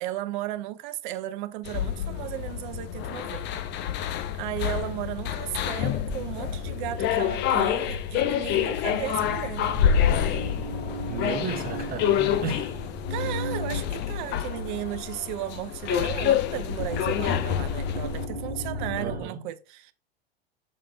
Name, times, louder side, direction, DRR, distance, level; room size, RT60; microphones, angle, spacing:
voice 1, 0.0-3.9 4.4-9.7 13.1-19.9, right 14 dB, 50° right, 0.7 m, -35 dB
sound 1, 1.6-18.3, left 9 dB, 35° left, 0.7 m, -28 dB
sound 2, 5.8-7.8 8.6-8.7 8.9-15.3 16.8-19.3, left 2 dB, 55° left, 3.9 m, -35 dB
voice 2, 11.1-12.8 19.0-19.4, right 5 dB, 30° right, 1.3 m, -34 dB
6.6 x 5.6 x 3.3 m
figure-of-eight pair, 85°, 31 cm